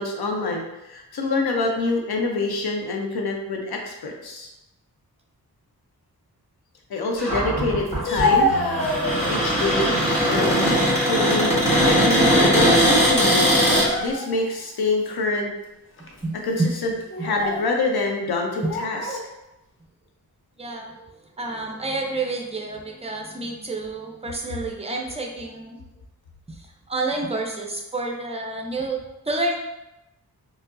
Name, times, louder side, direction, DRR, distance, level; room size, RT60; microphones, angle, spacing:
voice 1, 0.0-4.5 6.9-8.5 9.3-10.0 10.3-13.5 14.0-15.5 16.4-16.9 17.2-19.0, left 3 dB, 85° left, 1 dB, 0.7 m, -26 dB
Cupboard open or close, 7.2-13.9, equal, 20° left, 1.4 m, -20 dB
Speech, 7.9-9.5 10.0-10.6 11.0-12.2 12.5-12.7 13.5-14.5 15.0-15.2 16.0-16.2 17.0-17.7 18.6-19.2, left 2 dB, 35° left, 0.6 m, -27 dB
voice 2, 16.2-16.7 17.2-17.3 18.6-18.7 20.6-21.1 21.4-25.8 26.5-29.0 29.3-29.6, right 2 dB, 15° right, 1 dB, 0.5 m, -29 dB
4.4 x 2.0 x 2.6 m, 0.94 s
wide cardioid pair, 90°, 37 cm